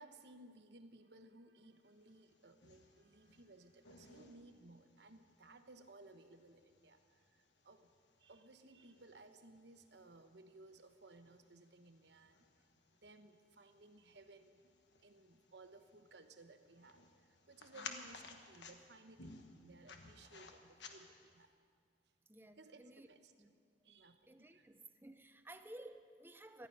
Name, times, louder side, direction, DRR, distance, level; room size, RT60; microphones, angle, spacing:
voice 1, 0.0-7.9 8.2-14.7 15.0-21.6 22.6-23.3 23.8-24.7, right 2 dB, 70° right, 8 dB, 1.0 m, -60 dB
sound 1, 2.0-21.4, left 4 dB, 75° left, 1.3 m, -58 dB
voice 2, 22.3-23.1 23.4-23.6 24.3-26.7, right 1 dB, 10° right, 9 dB, 0.6 m, -55 dB
19.0 x 13.5 x 5.5 m, 2.1 s
head